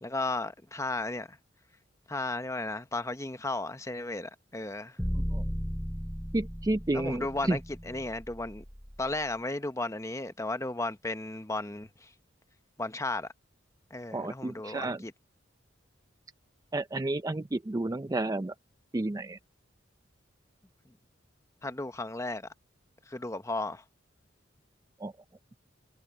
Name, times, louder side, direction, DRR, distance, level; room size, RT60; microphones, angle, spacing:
voice 1, 0.0-1.4 2.1-5.0 6.9-8.6 9.0-12.1 12.8-13.3 13.9-15.1 21.6-22.5 23.1-23.8, left 2 dB, 15° left, 0.9 m, -34 dB
sound 1, 5.0-9.2, equal, ahead, 1.9 m, -36 dB
voice 2, 5.1-5.4 6.3-7.6 14.1-15.0 16.7-18.5 18.9-19.4 25.0-25.1, right 2 dB, 20° right, 0.4 m, -31 dB
head